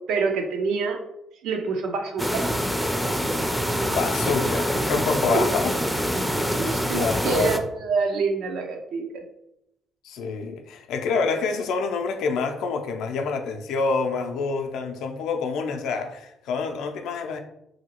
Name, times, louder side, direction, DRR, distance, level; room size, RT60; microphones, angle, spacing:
voice 1, 0.1-1.0 1.4-2.4 5.3-5.4 6.6-9.2, right 4 dB, 85° right, 0.5 m, -26 dB
sound 1, 2.2-7.6, equal, ahead, 0.4 m, -25 dB
voice 2, 3.9-6.5 6.9-7.6 10.0-17.4, left 4 dB, 85° left, 0.4 m, -27 dB
2.9 x 2.7 x 2.8 m
cardioid pair, 90°, 0 cm